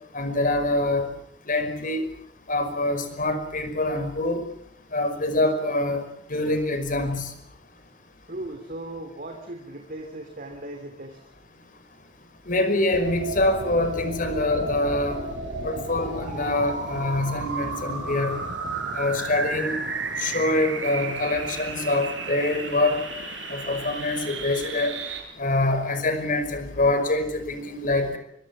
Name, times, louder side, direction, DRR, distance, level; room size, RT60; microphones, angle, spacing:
voice 1, 0.1-1.1 1.5-2.1 2.5-4.4 4.9-6.0 6.3-7.3 12.5-15.2 15.6-18.4 18.9-19.8 20.2-23.0 23.5-24.9 25.4-28.2, left 2 dB, 45° left, 8 dB, 5.3 m, -25 dB
voice 2, 8.3-11.2, right 1 dB, 45° right, 4 dB, 3.1 m, -37 dB
sound 1, 12.9-25.2, right 3 dB, 75° right, 6.1 m, -33 dB
24.5 x 24.0 x 7.4 m, 0.74 s
head